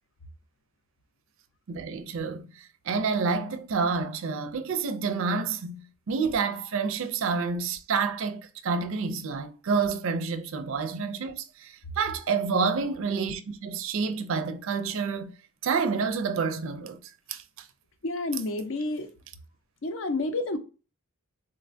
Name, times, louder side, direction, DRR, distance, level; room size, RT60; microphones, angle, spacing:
voice 1, 1.7-15.3 15.6-17.0 17.3-17.4, right 5 dB, 60° right, 0.4 m, -29 dB
voice 2, 18.0-19.1 19.8-20.6, left 2 dB, 60° left, 0.5 m, -29 dB
3.9 x 2.2 x 2.5 m
head